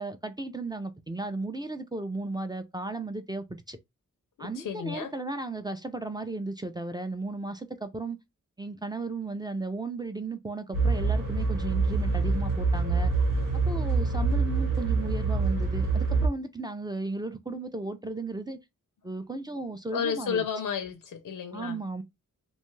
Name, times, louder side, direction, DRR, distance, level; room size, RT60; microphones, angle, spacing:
voice 1, 0.0-3.8 4.4-8.2 8.6-13.1 13.5-18.6 19.0-20.5 21.5-22.0, right 2 dB, 15° right, 0.3 m, -35 dB
voice 2, 4.4-5.1 19.9-21.8, left 7 dB, 80° left, 0.5 m, -32 dB
sound 1, 10.7-16.3, right 4 dB, 90° right, 1.1 m, -26 dB
2.5 x 2.3 x 3.0 m
wide cardioid pair, 85°, 32 cm